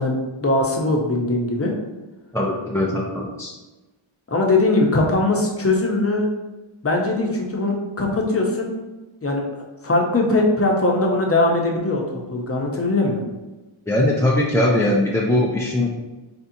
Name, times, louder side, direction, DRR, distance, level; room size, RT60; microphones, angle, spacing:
voice 1, 0.0-1.7 4.3-6.3 6.8-8.7 9.2-9.5 9.8-13.2, left 2 dB, 30° left, 0 dB, 0.8 m, -20 dB
voice 2, 2.3-3.5 13.9-15.9, left 1 dB, 5° left, -3 dB, 0.5 m, -20 dB
4.2 x 3.5 x 2.7 m, 1.1 s
wide cardioid pair, 75°, 50 cm